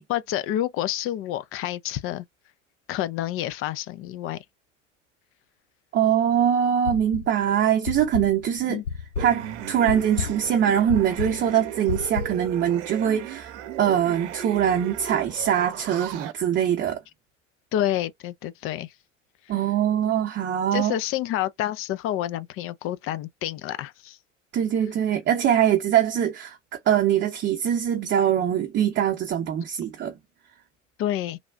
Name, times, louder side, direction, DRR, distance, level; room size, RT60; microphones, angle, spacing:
voice 1, 0.1-2.3 2.9-4.4 8.7-8.8 17.7-18.9 19.5-19.6 20.7-24.2 31.0-31.4, left 12 dB, 35° left, 0.4 m, -28 dB
voice 2, 5.9-8.8 9.2-17.0 19.5-21.0 24.5-26.6 26.9-30.1, right 9 dB, 30° right, 0.8 m, -23 dB
sound 1, 6.8-7.4 7.8-12.5, left 6 dB, 85° left, 0.6 m, -32 dB
sound 2, 9.2-16.3, right 11 dB, 65° right, 0.7 m, -36 dB
3.4 x 2.3 x 2.4 m
hypercardioid pair, 80°, 37 cm